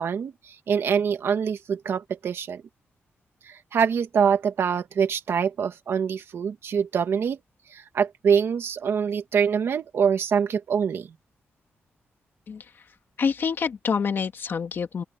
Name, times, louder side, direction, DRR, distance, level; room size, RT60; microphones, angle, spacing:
voice 1, 0.0-2.6 3.5-7.4 7.7-11.1, right 7 dB, 70° right, 1.7 m, -25 dB
voice 2, 13.2-15.0, left 6 dB, 55° left, 2.2 m, -27 dB
open air
wide cardioid pair, 140°, 4 cm